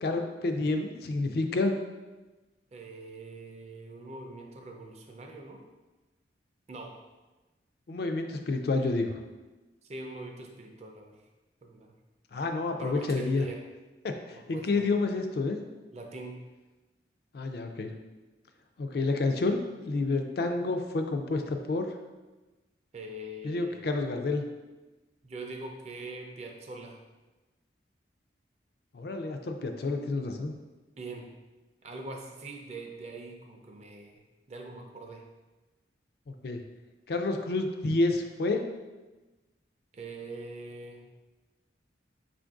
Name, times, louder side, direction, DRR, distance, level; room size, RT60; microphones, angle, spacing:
voice 1, 0.0-1.7 7.9-9.2 12.3-13.4 14.0-15.6 17.3-17.9 18.8-21.9 23.4-24.4 28.9-30.5 36.4-36.6 37.1-38.6, left 3 dB, 55° left, 5 dB, 0.4 m, -29 dB
voice 2, 2.7-5.6 6.7-7.0 9.8-11.2 11.6-12.0 12.7-13.6 14.3-14.9 15.9-16.4 22.9-24.2 25.2-27.0 31.0-31.3 31.8-34.2 34.5-35.2 39.9-41.1, right 2 dB, 35° right, 2 dB, 0.4 m, -42 dB
5.1 x 2.5 x 3.5 m, 1.2 s
head